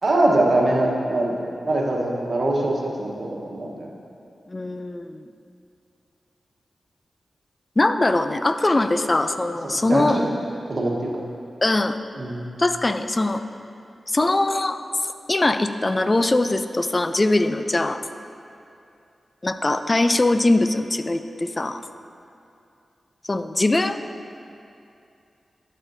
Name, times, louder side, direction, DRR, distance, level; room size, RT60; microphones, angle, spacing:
voice 1, 0.0-3.9 9.6-10.2 10.6-11.1 12.2-12.4, right 1 dB, 60° right, -2 dB, 1.2 m, -23 dB
voice 2, 4.5-5.3 7.8-10.2 11.6-12.0 12.6-13.4 14.1-14.8 15.3-18.0 19.4-21.8 23.3-24.0, left 2 dB, 35° left, 10 dB, 0.4 m, -21 dB
11.5 x 6.2 x 2.7 m, 2.6 s
cardioid pair, 50°, 0 cm